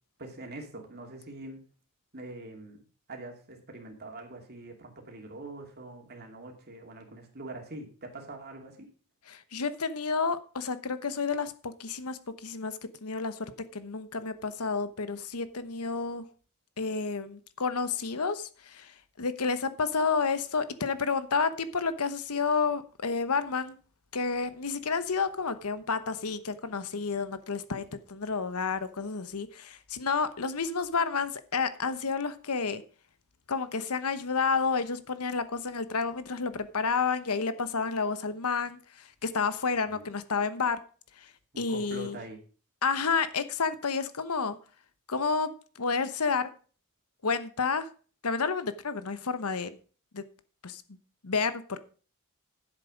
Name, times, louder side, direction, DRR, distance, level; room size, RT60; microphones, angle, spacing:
voice 1, 0.2-1.6 2.1-2.8 3.1-8.9 39.9-40.0 41.5-42.4, right 2 dB, 45° right, 2 dB, 2.6 m, -44 dB
voice 2, 9.3-16.3 16.8-23.8 24.1-32.8 33.5-40.8 41.2-41.3 41.6-42.2 42.8-44.6 45.1-46.5 47.2-47.9 48.2-49.8 50.1-50.3 50.6-50.8 51.2-51.8, left 5 dB, 80° left, 13 dB, 1.0 m, -30 dB
10.5 x 7.9 x 5.1 m, 0.39 s
head